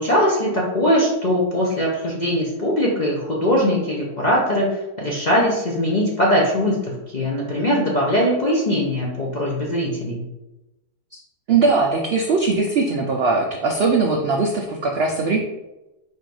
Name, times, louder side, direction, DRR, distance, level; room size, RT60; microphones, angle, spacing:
voice 1, 0.0-10.2, equal, 50° left, -4 dB, 0.5 m, -21 dB
voice 2, 11.5-15.4, right 4 dB, 75° right, 1 dB, 0.5 m, -20 dB
4.5 x 2.5 x 4.7 m, 0.99 s
omnidirectional pair, 1.7 m